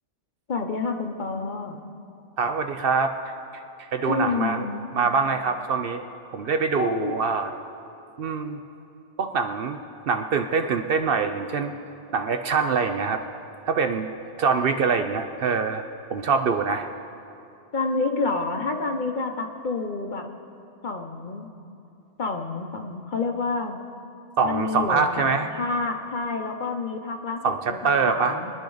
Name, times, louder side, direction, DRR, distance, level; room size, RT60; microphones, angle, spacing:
voice 1, 0.5-1.8 4.0-4.9 6.8-7.1 17.7-20.2 20.8-21.5 22.2-23.8 24.4-27.4 27.7-28.5, left 3 dB, 45° left, 4 dB, 0.9 m, -28 dB
voice 2, 2.4-3.1 3.9-4.7 4.9-6.0 6.3-7.5 8.2-8.6 9.2-11.7 12.1-13.2 13.7-14.1 14.4-15.8 16.1-16.9 24.4-25.5 27.4-28.4, right 5 dB, 60° right, 6 dB, 0.7 m, -24 dB
23.0 x 10.0 x 3.9 m, 2.7 s
omnidirectional pair, 1.2 m